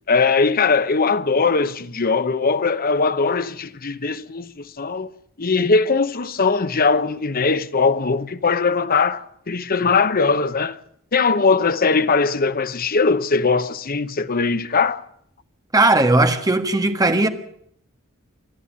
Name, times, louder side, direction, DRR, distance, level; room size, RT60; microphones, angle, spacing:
voice 1, 0.1-5.1 5.4-10.8 11.1-15.0, left 4 dB, 45° left, 0.9 m, -20 dB
voice 2, 15.7-17.3, right 2 dB, 20° right, 1.5 m, -17 dB
28.0 x 11.0 x 8.7 m
head